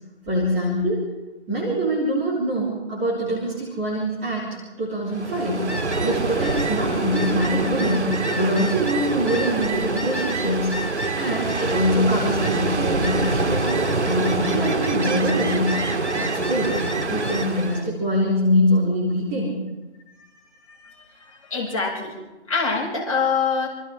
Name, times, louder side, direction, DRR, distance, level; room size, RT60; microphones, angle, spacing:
voice 1, 0.3-1.0 1.5-4.5 4.8-5.6 6.0-10.7 11.2-13.7 14.0-15.8 16.1-19.6, equal, 10° right, -7 dB, 3.2 m, -24 dB
Ocean, 5.1-17.9, right 2 dB, 75° right, 2.4 m, -25 dB
voice 2, 21.5-22.1 22.5-23.7, left 5 dB, 30° left, -3 dB, 6.7 m, -24 dB
27.5 x 26.0 x 3.8 m, 1.1 s
figure-of-eight pair, 170°, 34 cm